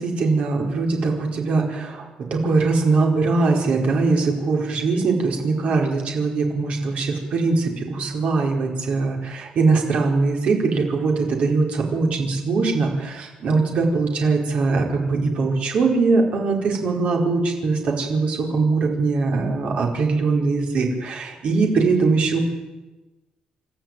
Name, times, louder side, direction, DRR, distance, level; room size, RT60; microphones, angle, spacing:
voice 1, 0.0-22.4, right 3 dB, 55° right, 1 dB, 4.7 m, -21 dB
28.5 x 13.5 x 9.1 m, 1.1 s
cardioid pair, 175°, 3 cm